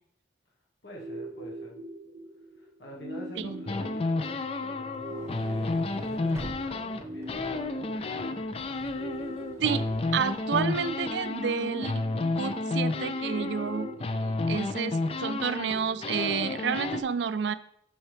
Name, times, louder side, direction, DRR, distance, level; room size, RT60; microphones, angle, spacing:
voice 1, 0.8-1.8 2.6-8.6 9.2-9.6, equal, 65° left, -2 dB, 1.4 m, -46 dB
sound 1, 0.9-16.9, right 1 dB, 90° right, 0.9 m, -44 dB
sound 2, 3.7-7.0 7.3-17.0, left 2 dB, 30° left, 0.4 m, -31 dB
sound 3, 4.9-11.3, equal, 15° right, 0.7 m, -48 dB
voice 2, 10.1-12.0 12.4-17.5, right 6 dB, 70° right, 15 dB, 0.4 m, -30 dB
7.1 x 5.7 x 3.4 m, 0.70 s
head